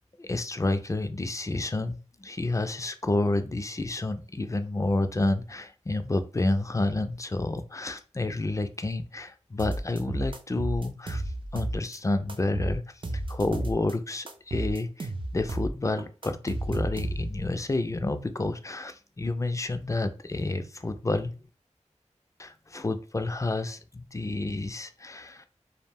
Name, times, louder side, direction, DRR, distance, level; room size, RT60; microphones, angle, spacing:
voice 1, 0.2-11.2 11.5-12.8 13.3-21.3 22.4-25.5, left 2 dB, 25° left, 9 dB, 0.3 m, -29 dB
sound 1, 9.6-12.0 12.3-13.9 14.3-17.5, right 1 dB, 45° right, 0.4 m, -32 dB
2.3 x 2.0 x 3.4 m, 0.35 s
wide cardioid pair, 50°, 12 cm